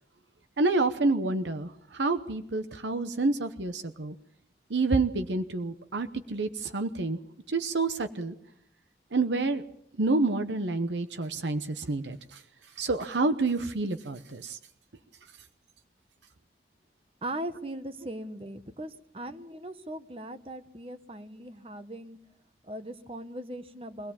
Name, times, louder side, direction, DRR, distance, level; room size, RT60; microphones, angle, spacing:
voice 1, 0.6-4.1 4.7-7.2 7.5-8.3 9.1-9.6 10.0-12.4 12.8-14.6, right 3 dB, 90° right, 8 dB, 0.9 m, -28 dB
voice 2, 17.2-22.2 22.6-24.1, right 1 dB, 30° right, 9 dB, 1.1 m, -39 dB
23.5 x 17.5 x 7.1 m, 0.76 s
head